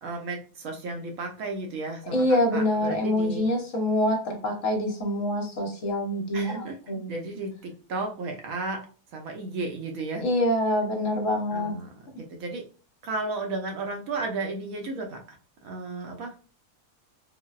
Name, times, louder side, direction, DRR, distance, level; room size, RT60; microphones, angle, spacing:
voice 1, 0.0-3.5 6.3-6.8 7.1-8.9 9.1-10.3 11.5-12.6 13.0-15.4 15.6-16.4, right 3 dB, 70° right, 2 dB, 0.9 m, -34 dB
voice 2, 2.1-7.1 10.2-11.7, left 1 dB, 60° left, 1 dB, 0.9 m, -25 dB
3.9 x 2.0 x 2.3 m, 0.37 s
omnidirectional pair, 1.7 m